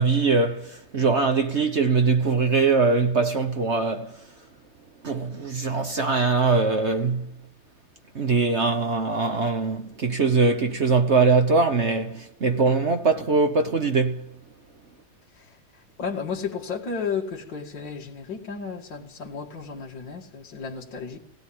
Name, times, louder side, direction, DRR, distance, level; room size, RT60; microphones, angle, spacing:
voice 1, 0.0-4.1 5.0-7.3 8.1-14.3, right 4 dB, 45° right, 1.0 m, -22 dB
voice 2, 16.0-21.2, left 5 dB, 60° left, 2.7 m, -33 dB
17.5 x 17.5 x 8.8 m
omnidirectional pair, 2.3 m